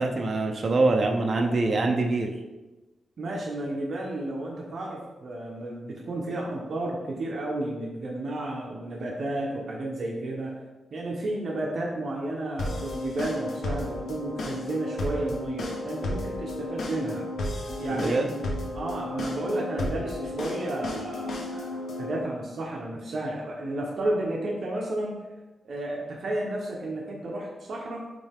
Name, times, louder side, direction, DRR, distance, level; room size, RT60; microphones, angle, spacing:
voice 1, 0.0-2.3 17.9-18.3, right 3 dB, 40° right, 2 dB, 0.7 m, -24 dB
voice 2, 3.2-10.5 10.9-17.3 17.8-18.2 18.7-25.2 25.6-28.0, right 1 dB, 55° right, -2 dB, 1.0 m, -32 dB
sound 1, 12.6-22.2, left 1 dB, 80° left, 1.2 m, -33 dB
9.3 x 3.3 x 3.6 m, 1.1 s
wide cardioid pair, 115°, 0 cm